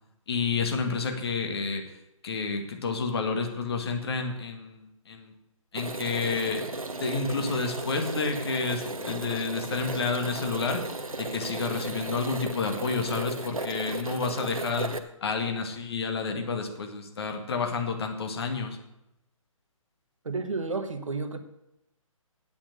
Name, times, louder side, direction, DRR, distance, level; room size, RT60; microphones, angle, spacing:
voice 1, 0.3-1.8 2.2-5.3 5.7-6.7 6.9-10.8 11.2-14.9 15.2-18.8, left 4 dB, 45° left, 5 dB, 2.1 m, -30 dB
sound 1, 5.8-15.0, right 2 dB, 80° right, 1.1 m, -35 dB
voice 2, 20.2-21.4, right 3 dB, 65° right, 8 dB, 1.5 m, -31 dB
8.6 x 8.5 x 8.0 m, 0.87 s
figure-of-eight pair, 135°, 18 cm